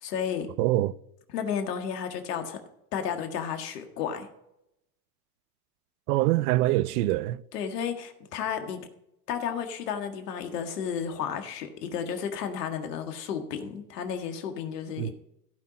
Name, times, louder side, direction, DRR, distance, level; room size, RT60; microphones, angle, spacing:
voice 1, 0.0-0.5 1.3-2.6 2.9-4.3 7.5-8.8 9.3-15.1, left 7 dB, 80° left, 1.8 m, -32 dB
voice 2, 0.6-0.9 6.1-7.4 15.0-15.1, right 16 dB, 70° right, 0.6 m, -24 dB
16.0 x 5.7 x 5.0 m
hypercardioid pair, 95°, 47 cm